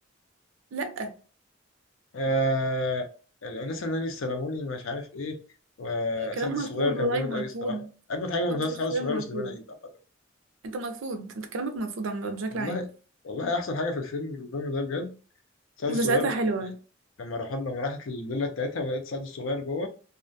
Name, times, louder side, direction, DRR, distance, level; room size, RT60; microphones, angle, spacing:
voice 1, 0.7-1.1 6.2-7.9 8.5-8.6 8.9-9.6 10.6-12.9 15.9-16.8, right 2 dB, 85° right, 0.5 m, -30 dB
voice 2, 2.1-3.1 3.4-5.4 5.8-9.8 12.5-12.8 13.2-15.1 15.8-16.3 17.2-19.9, left 2 dB, 85° left, 0.5 m, -30 dB
2.4 x 2.1 x 2.5 m
head